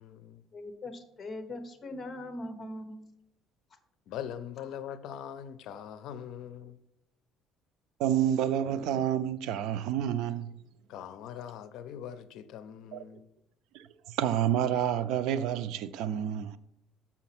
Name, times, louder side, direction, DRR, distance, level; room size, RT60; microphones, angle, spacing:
voice 1, 0.0-0.4 4.1-6.8 10.9-13.3, left 9 dB, 65° left, 0.6 m, -42 dB
voice 2, 0.5-3.1, left 1 dB, 25° left, 1.1 m, -41 dB
voice 3, 8.0-10.5 12.9-13.0 13.7-16.6, right 10 dB, 75° right, 0.5 m, -29 dB
7.0 x 5.9 x 6.0 m
cardioid pair, 150°, 0 cm